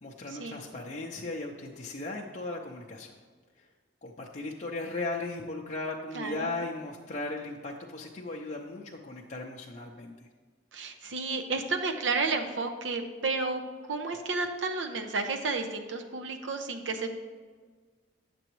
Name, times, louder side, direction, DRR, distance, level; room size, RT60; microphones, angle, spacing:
voice 1, 0.0-3.2 3.6-3.7 4.0-10.3, left 2 dB, 40° left, -1 dB, 0.5 m, -37 dB
voice 2, 6.1-6.5 10.7-13.6 13.9-17.1, right 3 dB, 85° right, 6 dB, 0.7 m, -31 dB
8.9 x 6.8 x 3.0 m, 1.5 s
head